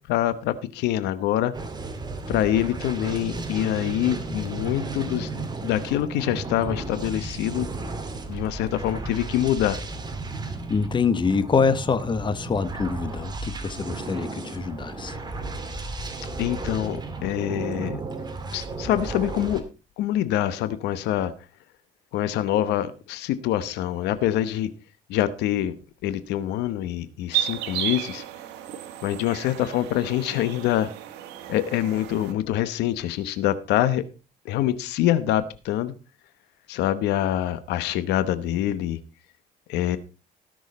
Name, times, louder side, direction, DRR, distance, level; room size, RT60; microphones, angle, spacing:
voice 1, 0.1-1.5 2.3-7.7 8.3-9.8 16.4-18.0 18.5-19.6 20.0-21.3 22.1-24.7 25.1-25.8 26.0-28.2 29.0-30.9 31.5-34.0 34.4-35.9 36.7-39.0 39.7-40.0, left 12 dB, 85° left, 0.9 m, -25 dB
sound 1, 1.5-19.6, right 3 dB, 25° right, 2.1 m, -34 dB
voice 2, 10.7-15.2, left 5 dB, 30° left, 1.1 m, -25 dB
sound 2, 27.3-32.3, right 13 dB, 85° right, 1.5 m, -33 dB
18.0 x 6.4 x 4.1 m
cardioid pair, 110°, 17 cm